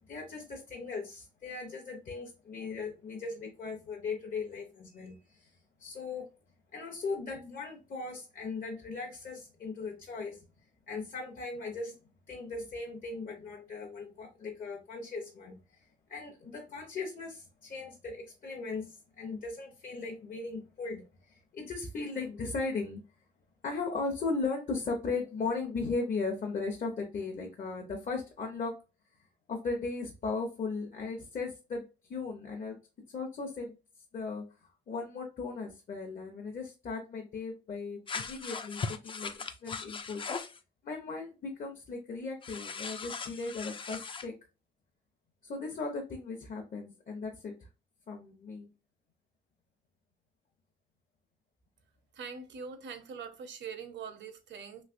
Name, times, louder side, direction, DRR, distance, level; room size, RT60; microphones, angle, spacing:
voice 1, 0.1-5.5 5.8-6.3 6.7-10.4 10.9-11.9 12.3-15.6 16.1-23.0 23.6-28.7 29.5-32.8 33.1-33.7 34.1-34.4 34.9-40.2 40.8-44.3 45.4-47.7 48.1-48.7, left 4 dB, 45° left, 0.8 m, -37 dB
sound 1, 38.1-40.6 42.4-44.3, left 5 dB, 25° left, 0.4 m, -39 dB
voice 2, 52.1-54.8, right 6 dB, 65° right, 0.8 m, -43 dB
3.2 x 2.8 x 2.5 m
cardioid pair, 90°, 20 cm